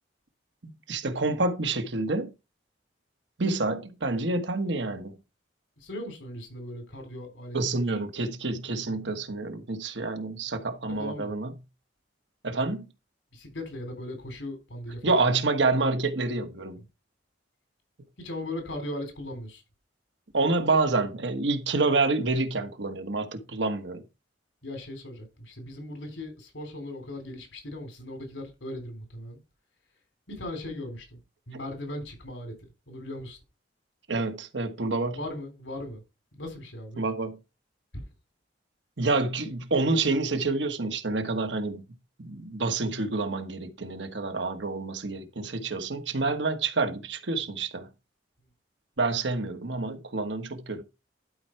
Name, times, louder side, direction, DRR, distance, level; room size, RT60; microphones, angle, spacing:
voice 1, 0.6-2.3 3.4-5.1 7.5-11.5 12.4-12.9 15.0-16.8 20.3-24.0 34.1-35.2 37.0-37.4 39.0-41.8 42.2-47.9 49.0-50.8, right 3 dB, 75° right, 1.3 m, -28 dB
voice 2, 5.8-7.9 11.0-11.3 13.3-15.3 16.5-16.7 18.2-19.6 24.6-29.4 30.3-31.2 31.5-32.6 32.9-33.4 35.1-36.0 36.3-37.0 37.9-38.0, left 1 dB, 85° left, 3.5 m, -38 dB
12.0 x 4.6 x 4.5 m
head